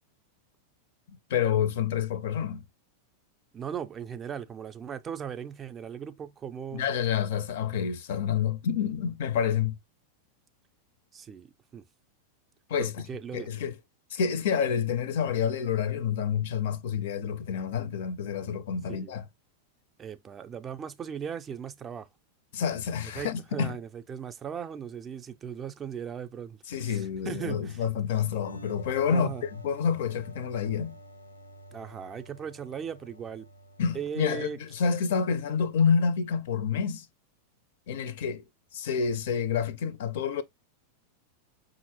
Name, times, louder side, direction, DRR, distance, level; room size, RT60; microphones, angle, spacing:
voice 1, 1.1-2.6 6.7-9.8 12.7-13.1 13.3-13.7 14.1-19.3 22.5-23.7 26.7-31.0 33.8-37.1 37.9-38.4 38.7-40.4, left 7 dB, 55° left, 0.5 m, -28 dB
voice 2, 3.5-6.9 11.1-11.5 11.7-11.8 12.8-13.5 18.9-19.1 20.0-22.1 23.0-27.8 29.1-29.4 31.7-33.5 33.9-34.6, right 8 dB, 25° right, 0.4 m, -38 dB
sound 1, 28.4-35.8, right 2 dB, 85° left, 0.7 m, -49 dB
5.6 x 2.5 x 2.8 m
figure-of-eight pair, 90°, 0 cm